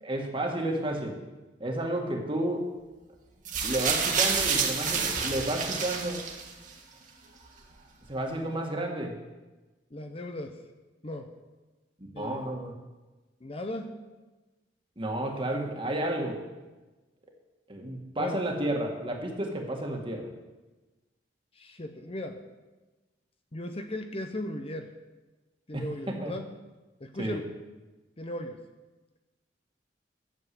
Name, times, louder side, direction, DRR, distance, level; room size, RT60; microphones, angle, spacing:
voice 1, 0.0-1.2 1.6-2.7 3.6-6.2 8.1-9.1 12.0-12.7 15.0-16.4 17.7-20.3 25.7-26.3 27.2-27.4, right 1 dB, 30° right, 1 dB, 1.8 m, -31 dB
sound 1, 3.5-6.7 7.6-7.7, right 5 dB, 45° right, 1.6 m, -28 dB
voice 2, 9.9-10.6 11.0-11.3 12.1-12.5 13.4-13.9 18.2-18.4 21.6-22.4 23.5-24.9 25.7-26.5 27.0-27.5 28.2-28.6, left 1 dB, 35° left, 6 dB, 0.8 m, -37 dB
11.5 x 7.0 x 7.6 m, 1.2 s
head